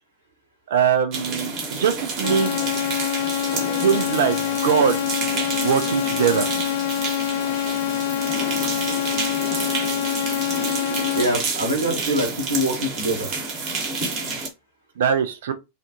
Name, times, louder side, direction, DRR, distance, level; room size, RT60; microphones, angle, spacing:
voice 1, 0.7-2.6 3.8-5.0 5.6-6.5 15.0-15.5, right 8 dB, 60° right, 0.4 m, -21 dB
sound 1, 1.1-14.5, right 3 dB, 40° right, 1.1 m, -29 dB
sound 2, 2.2-11.2, left 13 dB, 55° left, 0.3 m, -25 dB
voice 2, 11.1-13.3, equal, 85° right, 0.9 m, -24 dB
3.3 x 2.3 x 2.8 m
figure-of-eight pair, 90°, 0 cm